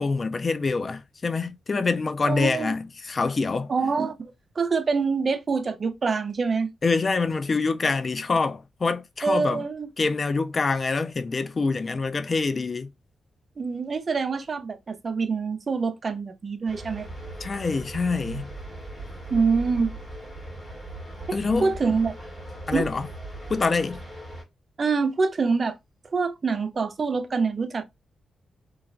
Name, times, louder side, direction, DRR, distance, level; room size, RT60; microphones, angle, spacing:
voice 1, 0.0-3.7 6.8-9.6 10.0-12.9 17.4-18.5 21.3-21.7 22.7-23.1 23.5-24.0, left 4 dB, 35° left, 0.3 m, -25 dB
voice 2, 2.2-2.8 3.7-4.3 4.6-6.7 9.2-9.9 13.6-17.1 19.3-19.9 21.3-22.1 22.7-22.9 24.8-25.8 26.1-27.8, right 4 dB, 40° right, 0.4 m, -25 dB
Cruiseship - inside crew area near the engine, 16.7-24.4, right 2 dB, 10° left, 1.3 m, -38 dB
3.1 x 2.3 x 2.3 m
cardioid pair, 110°, 0 cm